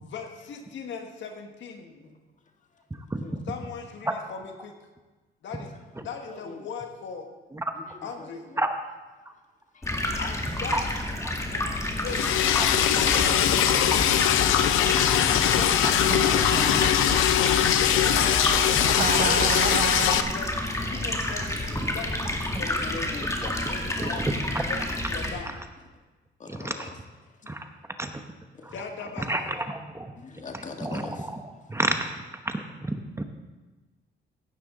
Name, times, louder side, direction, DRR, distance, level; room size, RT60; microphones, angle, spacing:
voice 1, 0.0-2.0 3.5-4.7 5.4-5.7 6.0-7.3 8.0-8.5 10.2-11.1 11.5-12.4 13.1-13.6 15.3-16.5 17.3-18.3 18.7-18.9 19.2-19.6 20.2-24.2 24.5-25.6 28.7-29.5, left 5 dB, 70° left, 4 dB, 1.6 m, -39 dB
voice 2, 6.2-6.6 7.9-8.6 11.3-11.5 22.6-23.3 23.7-23.8 24.0-24.1 26.4-26.9 27.4-27.5 30.2-31.3, left 4 dB, 40° left, 4 dB, 1.6 m, -42 dB
Stream, 9.8-25.3, left 1 dB, 15° left, 2.0 m, -30 dB
Liquid, 12.1-20.2, left 11 dB, 90° left, 0.7 m, -22 dB
Giggle, 15.8-17.3 18.1-20.4, right 7 dB, 45° right, 0.6 m, -31 dB
voice 3, 24.0-24.6 26.5-26.9 27.5-27.7 28.0-28.1 28.6-28.7 29.2-30.1 30.5-33.2, right 1 dB, 15° right, 6 dB, 0.9 m, -30 dB
16.0 x 9.4 x 3.8 m, 1.2 s
cardioid pair, 90°, 20 cm